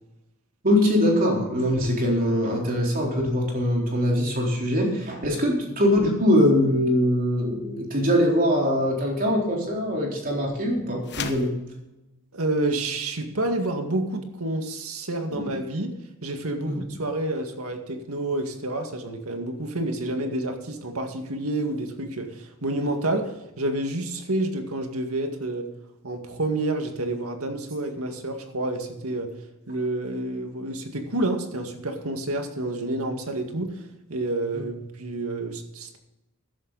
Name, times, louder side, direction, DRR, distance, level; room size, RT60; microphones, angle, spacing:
voice 1, 0.6-11.5 15.3-15.5 16.6-16.8, equal, 40° right, -1 dB, 3.9 m, -22 dB
sound 1, 11.0-11.6, left 6 dB, 55° left, 1.1 m, -33 dB
voice 2, 12.3-15.9 16.2-25.7 26.0-29.3 29.7-33.7 34.1-36.0, right 2 dB, 90° right, 5 dB, 2.0 m, -29 dB
14.5 x 11.0 x 4.1 m, 0.97 s
head